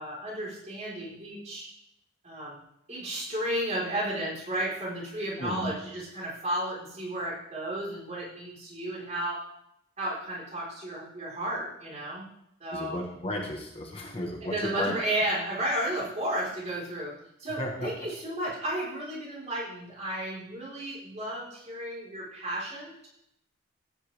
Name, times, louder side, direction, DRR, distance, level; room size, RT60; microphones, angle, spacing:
voice 1, 0.0-1.7 2.2-2.6 2.9-9.4 10.0-12.3 12.6-12.9 14.4-17.1 17.4-23.1, right 1 dB, 35° right, -5 dB, 4.3 m, -33 dB
voice 2, 5.4-5.7 12.7-14.9 17.6-17.9, left 1 dB, 30° left, 1 dB, 1.3 m, -34 dB
15.5 x 9.0 x 3.5 m, 0.79 s
head